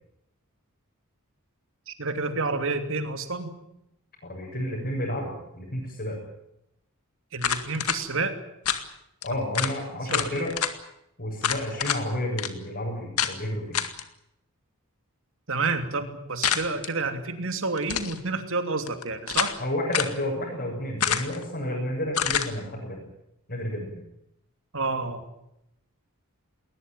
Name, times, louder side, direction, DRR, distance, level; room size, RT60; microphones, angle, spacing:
voice 1, 1.9-3.6 7.3-8.4 9.3-9.4 10.1-10.4 15.5-19.5 24.7-25.2, right 3 dB, 60° right, 7 dB, 2.9 m, -29 dB
voice 2, 4.2-6.2 9.2-10.5 11.2-13.8 19.6-23.0 23.5-24.0, left 1 dB, 45° left, -4 dB, 7.6 m, -31 dB
sound 1, 7.4-8.0 8.6-8.8 9.2-9.3 9.5-9.7 10.1-10.7 11.4-12.0 12.4-12.5 13.2-13.3 13.7-14.0 16.4-16.9 17.8-18.2 18.9-19.6 19.9-20.2 21.0-21.4 22.1-22.5, left 8 dB, 80° left, 2.0 m, -27 dB
20.5 x 19.5 x 9.3 m, 0.82 s
head